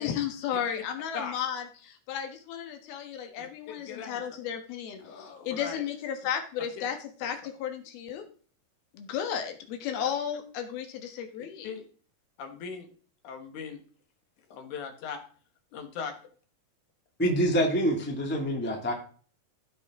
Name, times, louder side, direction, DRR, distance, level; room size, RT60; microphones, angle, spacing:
voice 1, 0.0-8.2 8.9-11.7, left 8 dB, 90° left, 6 dB, 3.3 m, -34 dB
voice 2, 3.4-4.2 5.0-5.8 10.0-10.1 11.6-11.8 12.4-12.9 13.2-13.8 14.5-15.2 15.7-16.1, left 6 dB, 60° left, 6 dB, 2.7 m, -39 dB
voice 3, 17.2-18.9, equal, 5° left, 1 dB, 0.8 m, -26 dB
15.5 x 5.5 x 3.6 m, 0.42 s
omnidirectional pair, 4.2 m